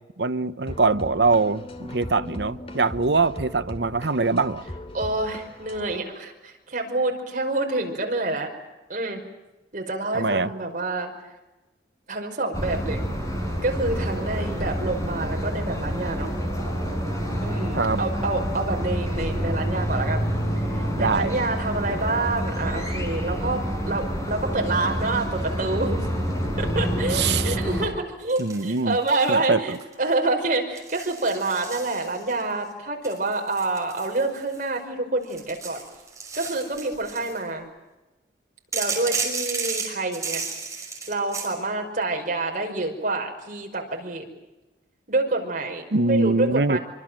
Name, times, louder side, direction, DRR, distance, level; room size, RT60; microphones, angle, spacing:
voice 1, 0.0-4.6 10.1-10.5 17.7-18.0 21.0-21.3 27.1-27.6 28.4-29.0 29.3-29.8 45.9-46.8, right 3 dB, 70° right, 0.9 m, -23 dB
sound 1, 0.7-6.0, left 1 dB, 35° left, 2.5 m, -39 dB
voice 2, 4.9-8.5 8.9-9.2 9.7-11.1 12.1-13.0 13.6-16.3 17.4-20.3 20.6-26.1 26.6-35.8 36.3-37.7 38.7-40.4 41.1-44.3 45.1-46.8, right 2 dB, 45° right, 5.4 m, -27 dB
sound 2, 12.5-27.9, equal, 20° left, 6.0 m, -27 dB
sound 3, 28.3-29.4 29.7-30.1 30.8-32.4 33.0-34.8 35.2-37.4 38.7-41.5, right 5 dB, 20° right, 5.9 m, -33 dB
25.0 x 25.0 x 7.6 m
head